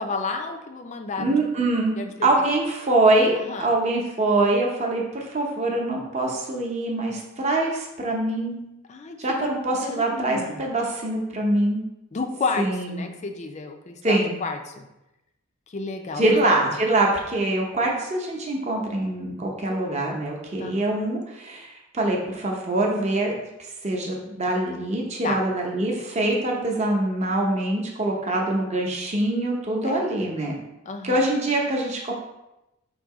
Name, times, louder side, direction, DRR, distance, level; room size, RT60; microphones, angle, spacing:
voice 1, 0.0-1.4 2.0-2.3 3.4-3.7 8.9-9.5 9.8-10.6 12.1-12.7 12.9-14.8 15.7-16.5 20.6-20.8 25.2-25.4 29.8-30.0 30.9-31.2, left 4 dB, 35° left, 5 dB, 0.4 m, -31 dB
voice 2, 1.2-2.0 2.2-8.6 9.2-11.9 12.6-13.0 14.0-14.4 16.2-23.3 23.8-30.5 31.0-32.1, right 2 dB, 30° right, 0 dB, 0.7 m, -24 dB
3.9 x 2.7 x 4.7 m, 0.92 s
head